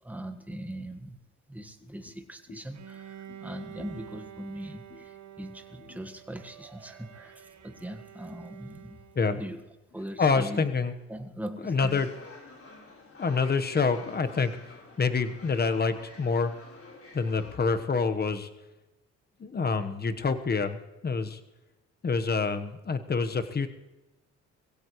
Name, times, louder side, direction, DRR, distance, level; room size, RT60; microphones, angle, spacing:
voice 1, 0.0-1.2 1.5-9.0 9.3-9.6 9.9-10.7 11.1-12.0, right 1 dB, 5° right, 6 dB, 1.5 m, -41 dB
Bowed string instrument, 2.7-9.5, right 10 dB, 60° right, 1.4 m, -48 dB
voice 2, 10.2-10.9 11.6-12.1 13.2-14.6 15.0-16.5 17.1-18.5 19.4-20.8 21.0-21.4 22.0-23.7, left 4 dB, 30° left, 9 dB, 1.2 m, -27 dB
sound 1, 11.8-17.6, left 3 dB, 50° left, 4.0 m, -50 dB
22.0 x 16.5 x 3.2 m, 1.0 s
cardioid pair, 90°, 30 cm